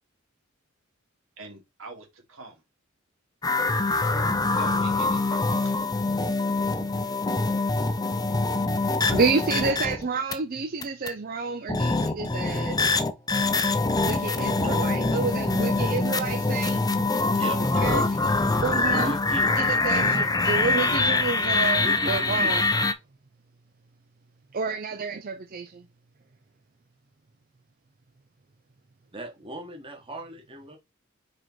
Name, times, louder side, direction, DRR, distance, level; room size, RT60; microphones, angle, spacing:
voice 1, 1.4-2.6 4.6-5.8 8.9-9.3 9.7-9.8 14.6-14.8, right 2 dB, 80° right, 2.6 m, -43 dB
sound 1, 3.4-10.3 10.8-11.1 11.7-22.9, left 3 dB, 20° left, 0.6 m, -24 dB
voice 2, 8.7-12.8 14.0-16.8 17.8-18.0 18.5-19.1 19.6-22.6 24.5-25.9, right 4 dB, 45° right, 0.5 m, -29 dB
voice 3, 17.3-18.3 18.6-19.5 21.8-22.8 29.1-30.8, equal, 25° right, 1.5 m, -37 dB
4.9 x 4.6 x 4.4 m
head